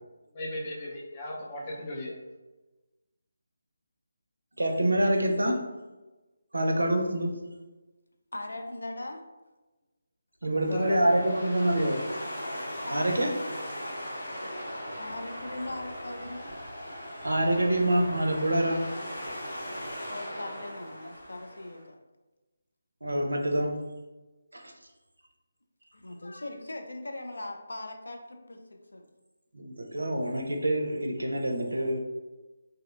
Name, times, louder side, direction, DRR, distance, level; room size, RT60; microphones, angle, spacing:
voice 1, 0.3-2.2 10.5-11.0, left 1 dB, 25° left, -3 dB, 0.5 m, -36 dB
voice 2, 4.6-5.6 6.5-7.5 10.4-12.0 12.9-13.3 17.2-18.9 23.0-23.8 24.5-24.7 29.5-32.0, right 1 dB, 85° right, 2 dB, 0.4 m, -26 dB
voice 3, 8.3-9.3 12.9-13.3 15.0-16.4 20.1-22.0 25.9-29.1, left 2 dB, 80° left, 4 dB, 0.3 m, -40 dB
sound 1, 10.6-21.8, equal, 55° left, 1.0 m, -39 dB
2.6 x 2.0 x 2.4 m, 1.1 s
figure-of-eight pair, 160°, 0 cm